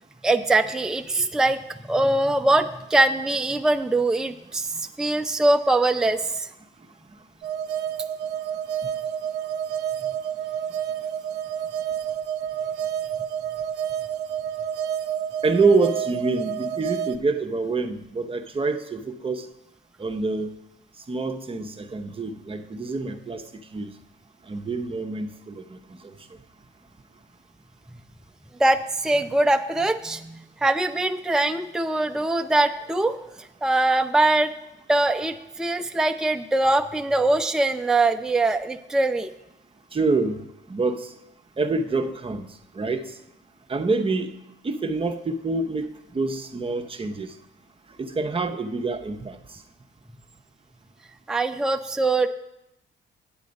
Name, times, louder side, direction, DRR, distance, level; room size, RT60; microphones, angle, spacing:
voice 1, 0.2-6.5 28.6-33.2 33.6-34.5 34.9-39.3 51.3-52.3, right 2 dB, 5° right, 6 dB, 0.5 m, -22 dB
sound 1, 7.4-17.2, right 9 dB, 60° right, 0.7 m, -29 dB
voice 2, 15.4-19.5 20.0-20.5 21.1-23.4 23.7-23.9 24.4-26.2 39.9-41.1 41.6-43.1 43.7-44.3 44.6-47.3 48.0-49.6, right 3 dB, 25° right, 5 dB, 0.8 m, -26 dB
8.8 x 8.1 x 5.3 m, 0.87 s
cardioid pair, 90°, 20 cm